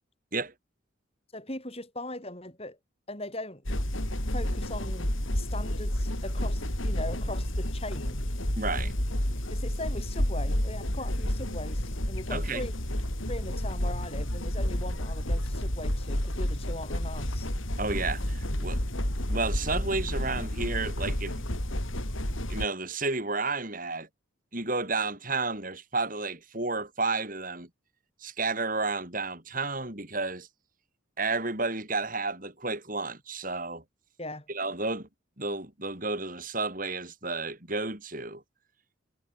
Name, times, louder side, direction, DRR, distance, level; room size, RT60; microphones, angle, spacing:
voice 1, 1.3-2.8 3.1-3.6 4.3-8.2 9.5-12.7 13.3-17.5 34.2-34.5, left 1 dB, 30° left, 6.5 m, -39 dB
sound 1, 3.6-22.6, equal, 75° left, 5.8 m, -30 dB
voice 2, 8.6-8.9 12.3-12.6 17.8-18.8 19.3-21.3 22.5-24.1 24.5-27.7 28.2-30.5 31.2-33.8 34.5-35.1 35.4-38.4, right 3 dB, 40° right, 5.2 m, -31 dB
head